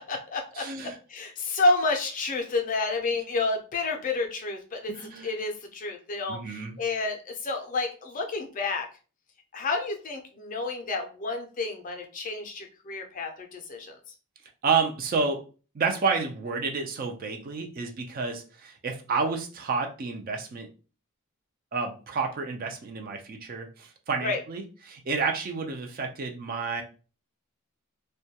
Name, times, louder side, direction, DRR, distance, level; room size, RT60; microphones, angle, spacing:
voice 1, 0.0-0.7 1.1-4.9 5.2-8.9 9.5-14.0 24.2-24.4, left 3 dB, 35° left, 3 dB, 0.4 m, -30 dB
voice 2, 0.5-1.0 4.9-5.3 6.3-6.8 14.6-15.4 15.7-20.7 21.7-26.8, right 4 dB, 40° right, 4 dB, 0.3 m, -30 dB
2.2 x 2.2 x 2.7 m, 0.36 s
head